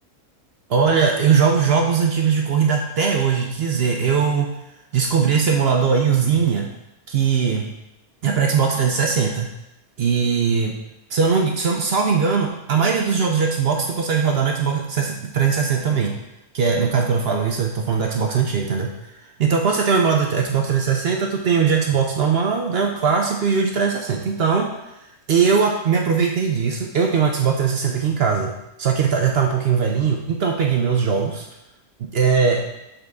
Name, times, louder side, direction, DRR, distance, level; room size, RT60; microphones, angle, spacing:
voice 1, 0.7-4.5 4.9-6.7 7.1-7.7 8.2-9.5 10.0-10.8 11.1-16.2 16.5-18.9 19.4-24.7 25.3-28.5 28.8-31.5 32.0-32.7, right 6 dB, 60° right, 1 dB, 0.7 m, -20 dB
7.0 x 3.8 x 3.5 m, 0.86 s
omnidirectional pair, 1.5 m